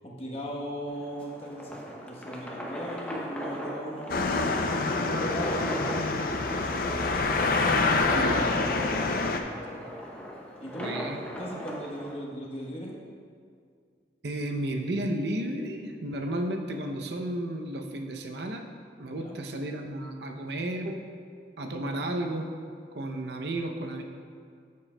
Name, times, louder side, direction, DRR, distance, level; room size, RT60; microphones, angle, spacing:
voice 1, 0.0-1.8 2.1-4.3 4.9-6.2 6.6-8.9 9.5-9.8 10.6-11.0 11.4-13.0 19.1-19.4 21.8-22.1, equal, 30° left, -3 dB, 1.0 m, -39 dB
sound 1, 0.9-12.1, equal, 5° left, 0.7 m, -39 dB
sound 2, 4.1-9.4, left 3 dB, 50° left, 0.4 m, -26 dB
voice 2, 7.7-8.4 10.8-11.3 14.2-18.6 19.0-21.0 21.6-22.5 22.9-24.0, right 1 dB, 65° right, 4 dB, 0.6 m, -33 dB
9.7 x 7.4 x 2.2 m, 2.1 s
head